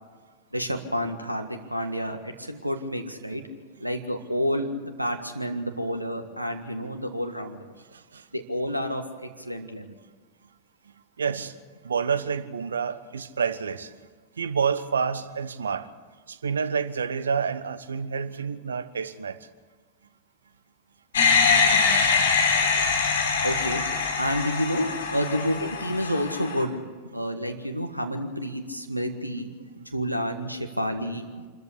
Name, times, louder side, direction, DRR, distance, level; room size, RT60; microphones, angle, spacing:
voice 1, 0.5-3.4 3.8-7.7 8.3-9.9 23.4-23.8 24.2-31.4, equal, 90° right, 6 dB, 1.6 m, -29 dB
voice 2, 7.9-8.2 11.2-11.5 11.8-14.0 14.4-15.9 16.3-19.4, right 6 dB, 70° right, 12 dB, 1.2 m, -28 dB
sound 1, 21.1-26.6, left 5 dB, 65° left, 3.9 m, -23 dB
27.0 x 13.5 x 8.4 m, 1.4 s
figure-of-eight pair, 90°, 0 cm